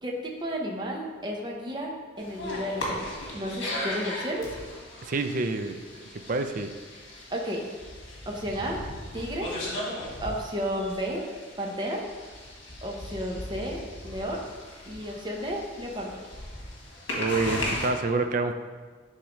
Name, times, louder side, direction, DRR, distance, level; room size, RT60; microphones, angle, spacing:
voice 1, 0.0-3.1 3.3-4.5 7.3-7.6 8.3-8.8 9.1-9.5 10.2-11.2 11.6-12.0 12.8-14.4 14.8-16.1, equal, 20° right, -1 dB, 0.8 m, -32 dB
sound 1, 2.2-17.9, left 1 dB, 65° left, 1.6 m, -37 dB
voice 2, 5.0-6.7 17.1-18.5, right 3 dB, 40° right, 8 dB, 0.4 m, -28 dB
10.0 x 3.7 x 3.1 m, 1.5 s
head